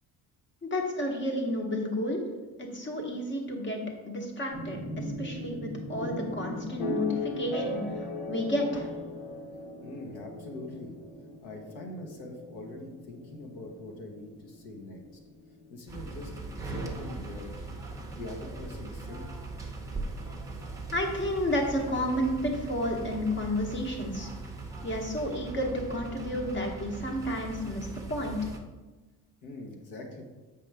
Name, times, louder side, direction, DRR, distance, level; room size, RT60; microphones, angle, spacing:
voice 1, 0.6-2.2 2.6-8.9 20.9-24.3 24.8-28.5, equal, 30° left, 2 dB, 1.2 m, -31 dB
sound 1, 4.5-18.3, left 2 dB, 50° left, 1.6 m, -38 dB
voice 2, 9.8-10.9 11.4-15.0 15.7-17.7 18.1-19.3 29.4-30.2, left 2 dB, 80° left, 2 dB, 1.5 m, -43 dB
sound 2, 15.9-28.6, right 3 dB, 10° right, 0.8 m, -40 dB
7.6 x 5.2 x 3.5 m, 1.2 s
cardioid pair, 165°, 38 cm